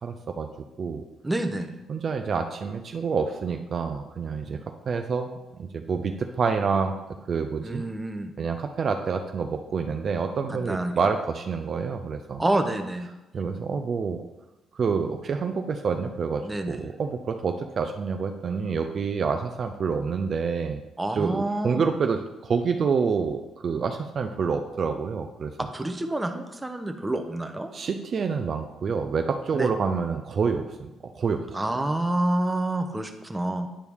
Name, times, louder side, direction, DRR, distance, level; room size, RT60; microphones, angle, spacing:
voice 1, 0.0-0.5 0.8-1.0 1.9-6.9 7.3-7.8 8.4-12.4 13.3-14.2 14.7-20.8 21.2-25.5 27.7-31.4, right 5 dB, 50° right, 5 dB, 0.5 m, -27 dB
voice 2, 1.2-1.7 7.6-8.3 10.7-10.9 12.4-13.1 16.4-16.8 21.0-21.8 25.6-27.7 29.5-29.7 31.5-33.7, right 1 dB, 15° right, 5 dB, 0.8 m, -28 dB
9.9 x 4.6 x 3.6 m, 0.99 s
cardioid pair, 90°, 0 cm